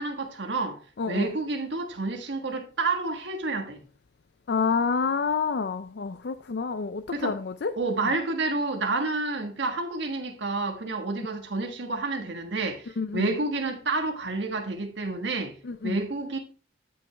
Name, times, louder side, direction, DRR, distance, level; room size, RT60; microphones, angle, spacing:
voice 1, 0.0-0.8 1.1-3.8 7.1-7.4 7.8-15.5 15.8-16.4, right 3 dB, 75° right, 1.5 m, -29 dB
voice 2, 1.0-1.3 4.5-7.7 13.0-13.3 15.6-16.0, left 5 dB, 60° left, 0.4 m, -28 dB
13.0 x 5.4 x 3.4 m
head